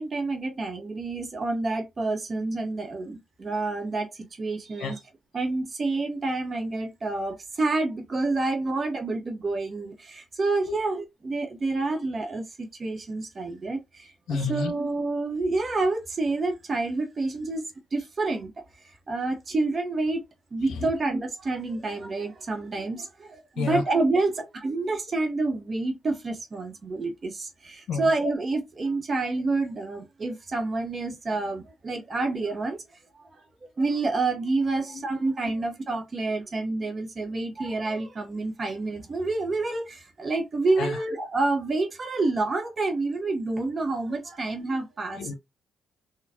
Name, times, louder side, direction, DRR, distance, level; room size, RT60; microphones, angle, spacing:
voice 1, 0.0-4.1 4.4-5.0 5.3-17.6 17.9-18.5 19.1-20.2 20.5-32.8 33.2-33.3 33.8-45.2, right 3 dB, 35° right, 1.1 m, -28 dB
voice 2, 14.3-14.7 20.7-20.9 23.6-23.8 27.9-28.1 34.9-35.0 40.8-41.0 45.1-45.4, left 4 dB, 75° left, 0.9 m, -30 dB
4.2 x 2.4 x 2.9 m
cardioid pair, 90°, 0 cm